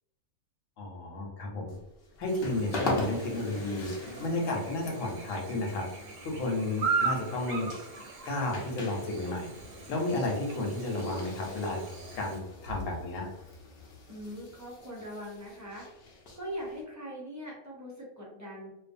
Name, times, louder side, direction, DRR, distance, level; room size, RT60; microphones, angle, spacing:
voice 1, 0.8-1.8 2.2-3.9 4.2-5.9 6.2-7.7 8.2-9.5 9.9-11.8 12.1-13.3, left 2 dB, 80° left, 0 dB, 1.0 m, -32 dB
sound 1, 1.7-16.8, left 2 dB, 55° left, 0.8 m, -41 dB
Chirp tweet / Buzz, 2.3-12.4, right 4 dB, 80° right, 0.9 m, -38 dB
voice 2, 14.1-15.9 16.3-18.7, equal, 25° right, -4 dB, 0.4 m, -41 dB
2.5 x 2.2 x 2.5 m, 0.96 s
omnidirectional pair, 1.3 m